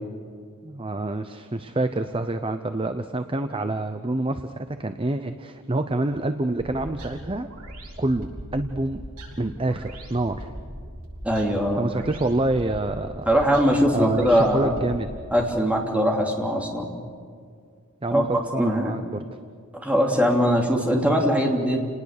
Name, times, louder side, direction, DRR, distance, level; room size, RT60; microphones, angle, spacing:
voice 1, 0.6-7.5 8.0-9.0 9.4-10.5 11.8-13.3 13.9-15.1 18.0-19.2, right 2 dB, 25° right, 9 dB, 0.7 m, -27 dB
sound 1, 6.6-15.3, equal, 90° right, 7.4 m, -40 dB
voice 2, 11.2-11.8 13.2-14.7 15.3-16.9 18.1-18.3 18.6-18.9 19.8-21.8, equal, 5° right, 0 dB, 2.9 m, -21 dB
29.5 x 19.5 x 6.7 m, 2.2 s
head